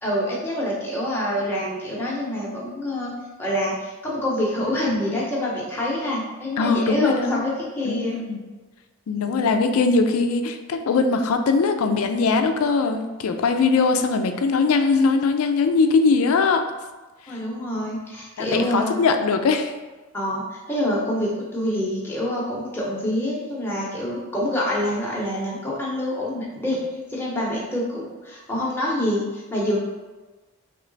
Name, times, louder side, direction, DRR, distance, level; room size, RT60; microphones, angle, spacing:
voice 1, 0.0-3.1 3.4-8.2 9.1-9.5 17.3-18.9 20.1-26.8 27.1-29.8, left 1 dB, 10° left, -5 dB, 0.8 m, -26 dB
voice 2, 6.6-7.4 7.9-8.4 9.1-16.6 17.3-17.4 18.4-19.7, left 4 dB, 80° left, 7 dB, 0.4 m, -21 dB
3.2 x 3.0 x 3.9 m, 1.2 s
head